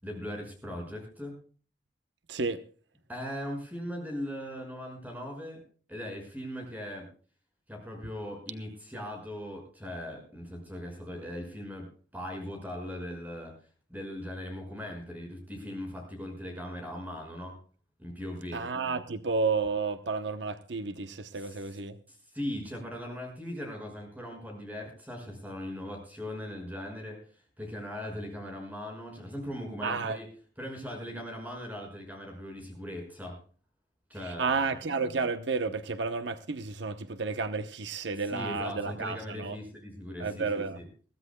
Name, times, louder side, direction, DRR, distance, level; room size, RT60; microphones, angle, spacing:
voice 1, 0.0-1.4 3.1-5.6 5.9-7.1 7.7-13.5 13.9-17.5 18.0-18.6 21.3-21.8 22.1-30.3 30.6-33.4 34.1-34.7 38.1-40.5 40.7-40.9, equal, 10° right, 6.0 m, -39 dB
voice 2, 2.3-2.6 18.5-22.0 29.8-30.2 34.2-39.6 40.2-40.8, right 4 dB, 80° right, 0.9 m, -31 dB
22.5 x 15.5 x 2.3 m
head